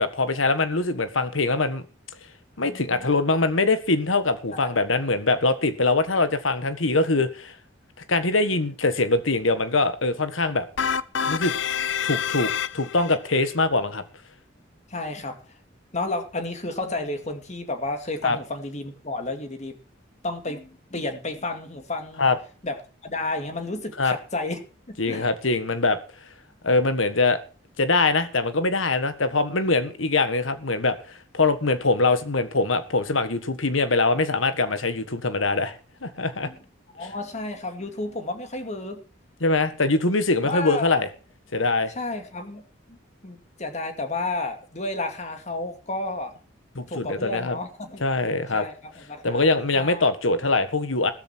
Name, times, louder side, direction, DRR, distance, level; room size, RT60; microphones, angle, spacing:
voice 1, 0.0-1.8 2.6-7.5 8.1-10.7 11.3-11.5 12.0-14.0 18.2-18.4 22.2-22.4 24.0-24.2 25.0-26.0 26.6-27.4 27.8-35.8 36.0-36.5 39.4-41.1 41.5-41.9 46.7-47.6 48.0-48.7 49.2-51.1, left 3 dB, 85° left, 1.6 m, -23 dB
voice 2, 2.6-3.1 4.5-4.7 14.9-15.4 15.9-19.8 20.2-22.3 22.6-22.8 23.0-24.6 24.9-25.3 36.4-36.6 37.0-39.0 40.4-41.0 42.0-42.6 42.9-43.0 43.2-46.3 46.8-48.0 48.5-50.1, left 2 dB, 35° left, 2.4 m, -32 dB
sound 1, 10.8-13.2, left 7 dB, 65° left, 0.7 m, -27 dB
15.0 x 13.5 x 4.5 m
head